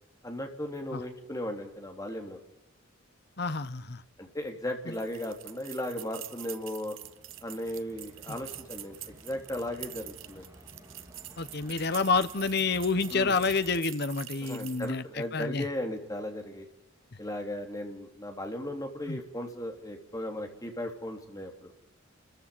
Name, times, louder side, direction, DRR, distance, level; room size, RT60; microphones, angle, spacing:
voice 1, 0.2-2.4 4.2-7.0 7.4-9.0 9.2-10.4 13.1-13.4 14.4-16.7 17.2-21.7, left 1 dB, 20° left, 4 dB, 3.5 m, -36 dB
voice 2, 3.4-4.0 8.3-8.4 11.4-15.0 15.3-15.6 19.1-19.2, left 4 dB, 55° left, 13 dB, 1.1 m, -28 dB
sound 1, 4.9-15.0, right 14 dB, 85° right, 1.2 m, -46 dB
sound 2, 7.0-13.8, equal, 15° right, 4.5 m, -53 dB
29.5 x 15.0 x 9.9 m, 0.91 s
head